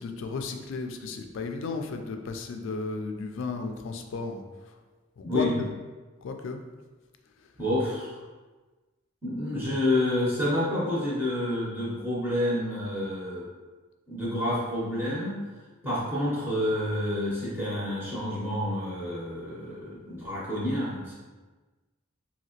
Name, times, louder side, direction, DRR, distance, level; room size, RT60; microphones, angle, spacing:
voice 1, 0.0-4.4 5.2-5.5 6.2-6.6, left 4 dB, 60° left, 5 dB, 0.3 m, -34 dB
voice 2, 5.2-5.6 7.6-8.2 9.2-13.4 14.1-15.4 15.8-21.1, left 1 dB, 10° right, -8 dB, 0.7 m, -29 dB
2.8 x 2.8 x 2.8 m, 1.3 s
head